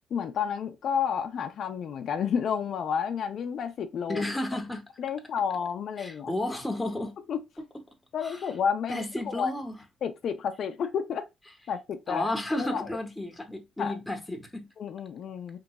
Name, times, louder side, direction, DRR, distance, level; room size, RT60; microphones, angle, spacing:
voice 1, 0.1-4.2 5.0-6.3 7.3-7.4 8.1-9.5 10.0-11.2 11.7-12.3 12.6-12.9 13.8-14.0 14.8-15.6, left 7 dB, 65° left, 0.5 m, -30 dB
voice 2, 4.1-4.8 6.0-7.1 8.2-8.5 8.9-9.8 12.1-14.7, left 1 dB, 10° left, 0.9 m, -32 dB
3.7 x 3.0 x 2.3 m
cardioid pair, 90°, 0 cm